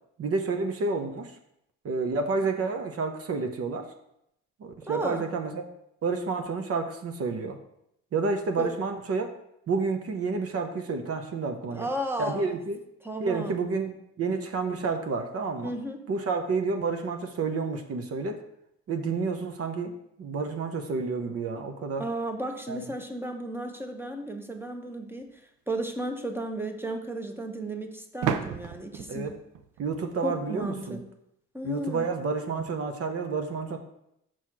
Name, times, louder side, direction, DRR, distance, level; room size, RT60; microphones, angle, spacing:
voice 1, 0.2-1.3 1.8-3.9 4.6-5.6 6.0-7.6 8.1-9.3 9.7-11.9 12.2-12.8 13.2-15.7 16.1-18.4 18.9-19.9 20.2-22.1 22.7-22.8 29.1-29.3 29.8-31.0 31.6-33.8, right 4 dB, 50° right, 6 dB, 0.7 m, -30 dB
voice 2, 4.8-5.3 8.6-8.7 11.7-12.6 13.0-13.6 15.6-16.0 22.0-25.3 25.7-29.3 30.2-31.0 31.5-32.1, right 1 dB, 5° right, 4 dB, 0.8 m, -33 dB
sound 1, 25.2-25.3 28.2-30.9, right 8 dB, 90° right, 0.5 m, -34 dB
6.2 x 4.1 x 4.6 m, 0.79 s
cardioid pair, 90°, 30 cm